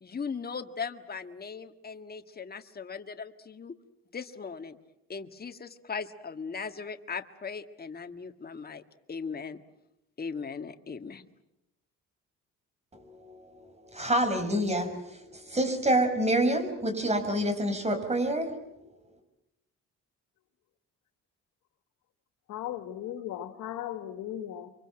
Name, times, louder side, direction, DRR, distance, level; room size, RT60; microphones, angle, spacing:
voice 1, 0.0-3.7 4.1-4.8 5.1-8.8 9.1-9.6 10.2-11.2, left 5 dB, 30° left, 1.8 m, -38 dB
voice 2, 12.9-18.5, right 1 dB, 20° right, 6.0 m, -28 dB
voice 3, 22.5-24.7, left 11 dB, 90° left, 1.9 m, -37 dB
28.5 x 24.5 x 7.7 m
cardioid pair, 90°, 30 cm